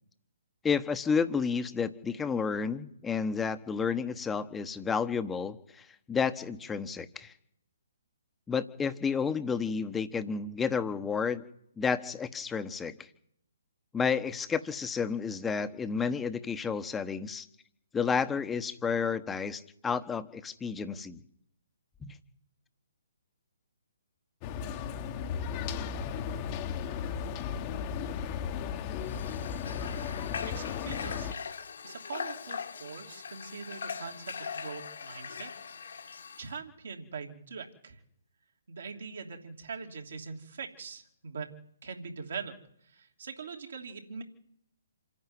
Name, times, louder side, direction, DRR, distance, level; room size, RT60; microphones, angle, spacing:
voice 1, 0.6-7.3 8.5-11.4 11.8-13.0 13.9-17.5 17.9-21.2 22.0-22.1, left 6 dB, 10° left, 11 dB, 1.1 m, -31 dB
sound 1, 24.4-31.3, left 7 dB, 30° left, 1.2 m, -35 dB
Water / Water tap faucet, 29.0-36.5, left 6 dB, 65° left, 1.9 m, -41 dB
voice 2, 30.5-31.4 31.8-35.5 35.8-38.0 38.7-42.6 42.8-44.2, right 5 dB, 65° right, 2 dB, 3.0 m, -43 dB
26.5 x 11.0 x 9.7 m, 0.76 s
figure-of-eight pair, 135°, 0 cm